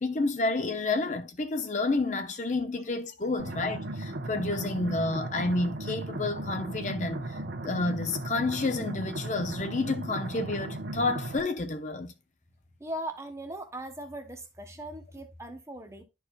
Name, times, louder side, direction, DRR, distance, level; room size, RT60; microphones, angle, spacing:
voice 1, 0.0-12.1, left 2 dB, 40° left, 0.6 m, -30 dB
sound 1, 3.4-11.4, right 1 dB, 85° right, 1.1 m, -36 dB
voice 2, 12.8-16.0, right 1 dB, 15° right, 1.0 m, -39 dB
11.5 x 4.6 x 2.3 m
head